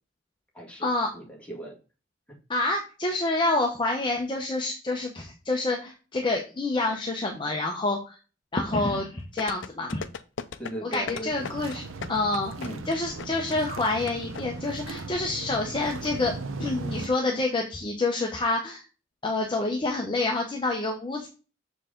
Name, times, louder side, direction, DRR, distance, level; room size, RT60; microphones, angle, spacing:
voice 1, 0.5-0.9 1.1-1.8 2.3-2.4 10.6-11.7 12.6-12.8, right 1 dB, 5° left, -2 dB, 1.8 m, -38 dB
voice 2, 2.5-8.2 8.5-10.0 10.9-12.5 12.9-18.8 19.2-21.3, left 2 dB, 25° left, 1 dB, 0.8 m, -28 dB
sound 1, 9.4-14.4 14.7-14.8, left 6 dB, 65° left, 0.5 m, -36 dB
sound 2, 11.3-17.1, right 3 dB, 85° right, 0.7 m, -37 dB
6.7 x 4.7 x 3.7 m, 0.34 s
head